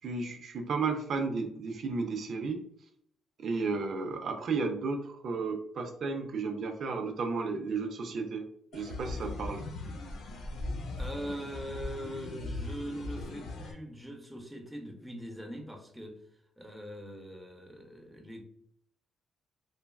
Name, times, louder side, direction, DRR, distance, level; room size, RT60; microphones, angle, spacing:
voice 1, 0.0-2.6 3.4-8.4 8.7-9.6, right 4 dB, 60° right, 4 dB, 0.4 m, -33 dB
sound 1, 8.7-13.7, left 2 dB, 75° left, 0.6 m, -39 dB
voice 2, 11.0-16.2 16.6-18.4, equal, 5° right, 2 dB, 0.7 m, -42 dB
3.2 x 2.3 x 2.2 m, 0.68 s
cardioid pair, 90°, 0 cm